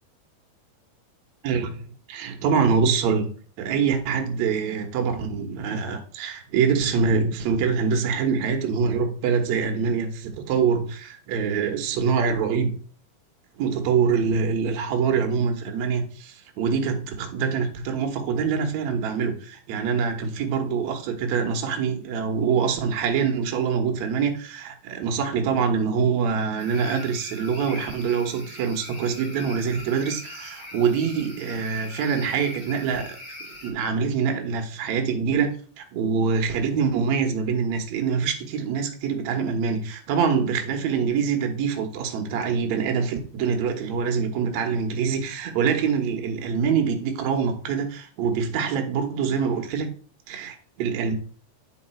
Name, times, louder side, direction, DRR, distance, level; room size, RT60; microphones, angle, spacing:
voice 1, 1.4-1.8 2.1-3.3 3.6-12.8 13.6-33.2 33.6-49.9 50.3-51.1, right 6 dB, 65° right, 1.9 m, -25 dB
sound 1, 26.6-33.7, left 1 dB, 25° left, 2.3 m, -41 dB
9.1 x 4.8 x 4.4 m
omnidirectional pair, 4.4 m